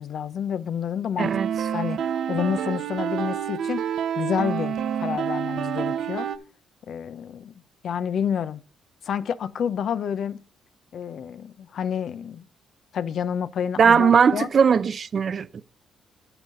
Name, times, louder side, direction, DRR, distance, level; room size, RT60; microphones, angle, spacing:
voice 1, 0.0-1.4 1.7-3.9 4.2-6.3 6.8-7.5 7.8-8.6 9.0-10.4 10.9-12.5 12.9-14.5, left 8 dB, 65° left, 0.8 m, -29 dB
voice 2, 1.2-1.5 13.8-15.6, right 6 dB, 50° right, 0.7 m, -19 dB
sound 1, 1.2-6.4, right 8 dB, 70° right, 1.0 m, -28 dB
9.2 x 9.2 x 3.8 m
cardioid pair, 90°, 0 cm